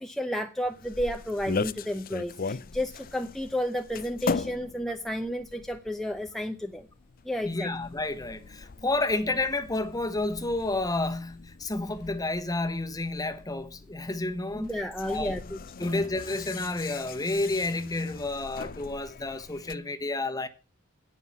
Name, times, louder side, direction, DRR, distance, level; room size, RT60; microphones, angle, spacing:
voice 1, 0.0-6.9 7.2-7.7 14.5-15.9, equal, ahead, 0.7 m, -32 dB
sound 1, 0.7-19.8, left 4 dB, 45° left, 0.6 m, -39 dB
voice 2, 7.4-14.7 15.0-15.4 15.8-20.5, left 2 dB, 20° left, 1.2 m, -30 dB
17.0 x 5.9 x 7.2 m
head